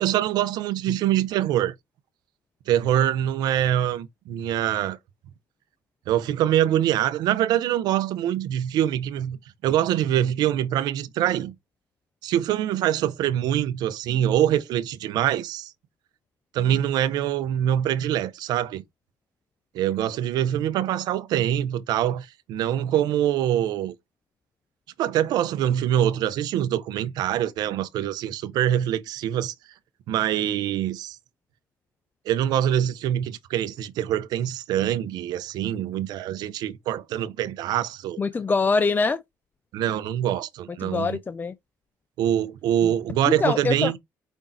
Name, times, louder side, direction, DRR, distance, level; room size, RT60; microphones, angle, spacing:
voice 1, 0.0-1.7 2.7-5.0 6.1-9.4 9.6-11.5 12.2-15.7 16.5-18.8 19.7-23.9 25.0-29.5 30.1-31.2 32.3-38.2 39.7-41.2 42.2-44.0, right 11 dB, 70° right, 0.7 m, -24 dB
voice 2, 38.2-39.2 40.8-41.5 42.8-42.9 43.3-43.9, left 4 dB, 25° left, 0.4 m, -24 dB
5.3 x 3.5 x 2.6 m
supercardioid pair, 80°, 7 cm